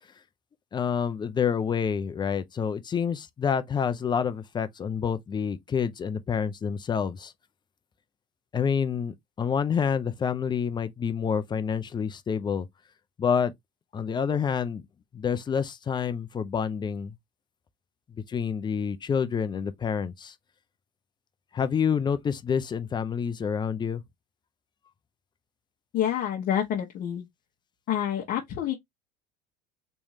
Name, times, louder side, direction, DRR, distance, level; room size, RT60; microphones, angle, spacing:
voice 1, 0.7-7.3 8.5-12.7 13.2-13.5 13.9-14.8 15.1-17.1 18.3-20.3 21.5-24.0, left 7 dB, 20° left, 0.5 m, -28 dB
voice 2, 25.9-27.2 27.9-28.7, left 10 dB, 50° left, 1.0 m, -28 dB
3.5 x 3.1 x 2.7 m
supercardioid pair, 105°, 20 cm